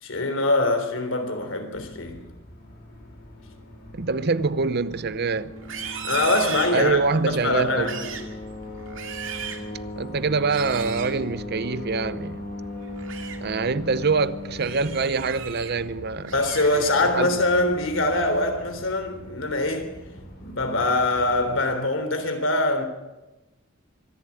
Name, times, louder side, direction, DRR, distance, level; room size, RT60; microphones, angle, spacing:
voice 1, 0.0-2.2 6.0-7.0 7.3-8.2 16.3-19.9 20.4-22.9, left 2 dB, 65° left, 3.5 m, -23 dB
sound 1, 1.7-21.6, left 1 dB, 50° left, 4.3 m, -39 dB
voice 2, 3.9-5.5 6.7-7.9 10.0-12.4 13.4-16.3 16.7-16.8 17.2-17.3, right 4 dB, 50° right, 0.7 m, -25 dB
Livestock farm animals working animals, 5.6-7.2 7.7-8.3 8.8-9.7 10.4-11.1 12.8-13.4 13.8-14.1 14.6-15.7 16.1-17.1 17.5-17.9 18.3-18.7, right 8 dB, 65° right, 2.5 m, -37 dB
24.5 x 11.0 x 9.8 m
head